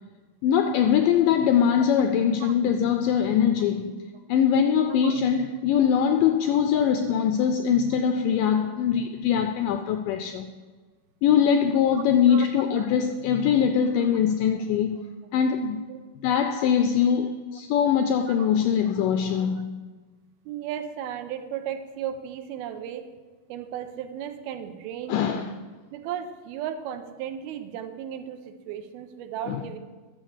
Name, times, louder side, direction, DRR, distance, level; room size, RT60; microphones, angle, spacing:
voice 1, 0.4-4.0 4.3-10.5 11.2-15.0 15.3-15.8 16.2-19.7 25.1-25.5 29.5-29.6, left 8 dB, 85° left, 1.9 m, -22 dB
voice 2, 20.5-23.1 23.5-25.4 25.9-29.8, right 9 dB, 85° right, 2.7 m, -35 dB
10.5 x 7.1 x 7.3 m
omnidirectional pair, 4.4 m